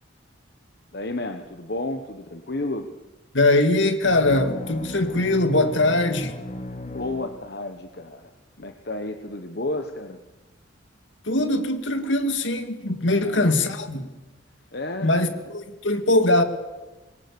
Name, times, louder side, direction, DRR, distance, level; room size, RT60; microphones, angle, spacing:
voice 1, 0.9-2.9 6.8-8.3 8.6-10.2 13.1-13.5 14.7-15.4, left 2 dB, 55° left, 1.2 m, -32 dB
voice 2, 3.3-6.4 11.3-14.1 15.0-16.4, left 2 dB, 70° left, 2.3 m, -21 dB
sound 1, 4.0-7.9, left 1 dB, 35° left, 1.3 m, -36 dB
26.0 x 21.5 x 6.9 m
head